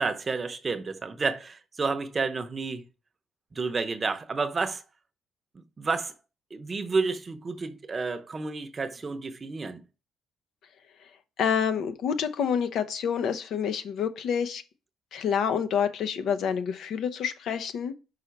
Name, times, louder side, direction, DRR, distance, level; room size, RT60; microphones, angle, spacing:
voice 1, 0.0-2.8 3.5-4.8 5.8-6.1 6.5-9.8, right 4 dB, 30° right, 0.7 m, -30 dB
voice 2, 11.4-14.6 15.1-17.9, left 7 dB, 70° left, 0.7 m, -28 dB
5.7 x 3.9 x 5.2 m
cardioid pair, 125°, 0 cm